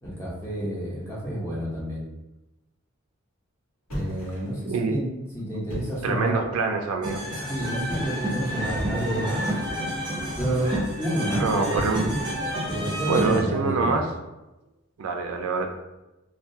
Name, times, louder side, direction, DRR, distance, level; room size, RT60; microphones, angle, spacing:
voice 1, 0.0-2.0 3.9-6.4 7.5-9.6 10.3-10.7 11.0-12.2 12.7-14.0, right 1 dB, 15° left, -7 dB, 0.8 m, -30 dB
sound 1, 3.9-4.7 5.6-6.3 7.9-8.3 10.3-11.0 11.7-12.5, equal, 90° left, 1.1 m, -35 dB
voice 2, 4.7-5.0 6.0-7.2 11.4-12.0 13.1-14.1 15.0-15.7, right 4 dB, 80° right, 4 dB, 0.3 m, -25 dB
sound 2, 7.0-13.4, equal, 20° right, 0.6 m, -29 dB
2.3 x 2.2 x 2.6 m, 0.99 s
head